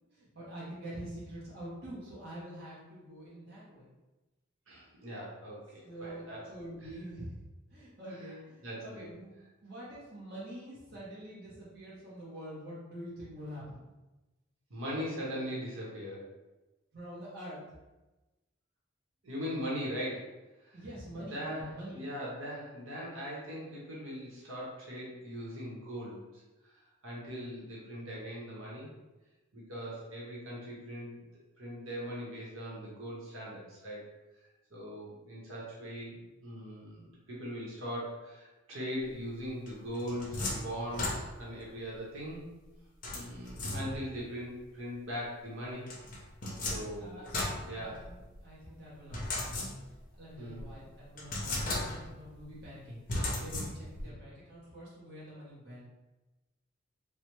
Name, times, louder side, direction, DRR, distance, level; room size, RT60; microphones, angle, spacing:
voice 1, 0.1-3.9 5.8-7.4 7.7-9.3 9.6-13.8 16.9-17.6 20.7-22.0 46.9-47.3 47.7-49.6 50.2-55.9, right 1 dB, 50° right, -8 dB, 0.8 m, -46 dB
voice 2, 4.7-6.5 6.8-6.9 8.1-8.3 8.6-9.1 14.7-16.3 19.2-20.3 20.6-20.8 21.1-26.2 27.0-28.9 29.5-31.2 31.6-34.1 34.7-42.4 43.1-45.9 46.7-47.2 47.6-48.0 50.4-50.7 54.0-54.1, equal, 75° right, -6 dB, 0.9 m, -40 dB
sound 1, 39.7-41.6 43.0-44.2 45.9-48.4 49.1-50.1 50.6-50.7 51.2-52.3 53.1-54.1, left 2 dB, 40° left, 0.5 m, -36 dB
3.1 x 2.1 x 3.0 m, 1.1 s
head